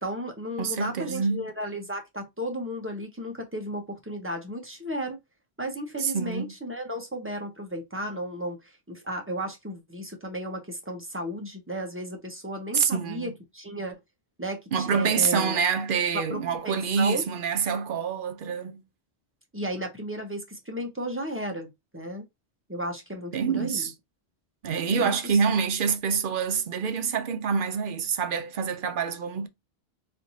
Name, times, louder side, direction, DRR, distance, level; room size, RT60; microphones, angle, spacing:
voice 1, 0.0-5.2 5.6-14.0 14.4-15.6 16.1-17.3 19.5-22.3 22.7-23.9 24.9-25.6, equal, 15° right, 0.8 m, -34 dB
voice 2, 0.6-1.5 6.0-6.5 12.7-13.3 14.7-18.8 23.3-23.9 24.6-29.5, right 6 dB, 60° right, 0.7 m, -26 dB
3.3 x 2.7 x 4.0 m
omnidirectional pair, 1.1 m